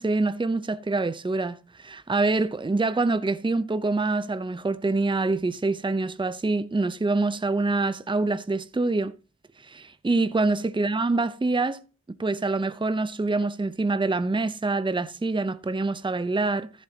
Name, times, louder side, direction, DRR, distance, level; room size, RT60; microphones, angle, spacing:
voice 1, 0.0-9.1 9.6-11.8 12.2-16.7, right 3 dB, 15° right, 0.6 m, -25 dB
14.0 x 7.5 x 2.8 m
cardioid pair, 60°, 29 cm